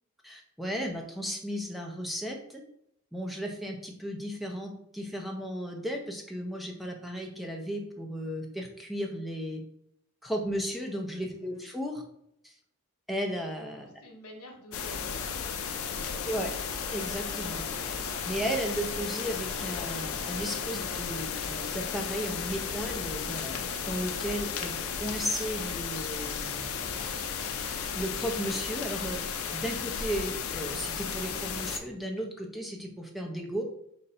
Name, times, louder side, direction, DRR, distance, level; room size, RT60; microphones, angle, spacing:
voice 1, 0.2-2.6 3.1-9.6 10.2-12.0 12.4-12.5 13.1-13.9 16.3-16.5 16.9-17.6 18.3-26.9 27.9-29.2 29.5-33.6, equal, ahead, 1 dB, 0.6 m, -35 dB
voice 2, 11.3-11.7 13.8-16.5, left 1 dB, 90° left, 2 dB, 1.0 m, -50 dB
sound 1, 14.7-31.8, left 6 dB, 70° left, 0.5 m, -34 dB
4.0 x 2.6 x 4.2 m, 0.72 s
head